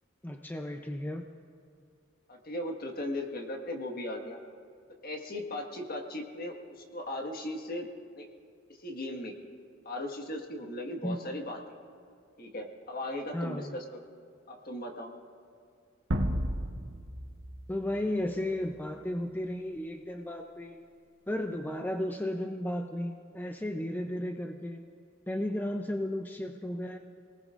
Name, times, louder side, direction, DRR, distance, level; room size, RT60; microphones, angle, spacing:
voice 1, 0.2-1.3 11.0-11.2 13.3-13.7 17.7-20.8 21.3-24.9 25.3-27.0, left 1 dB, 10° left, 4 dB, 0.5 m, -34 dB
voice 2, 2.3-4.4 5.0-7.9 8.1-8.3 8.8-9.4 9.9-11.6 12.4-14.0 14.5-15.1, left 1 dB, 50° left, 2 dB, 1.6 m, -37 dB
sound 1, 16.1-18.5, equal, 85° right, 1.3 m, -33 dB
29.0 x 19.0 x 2.5 m, 2.2 s
head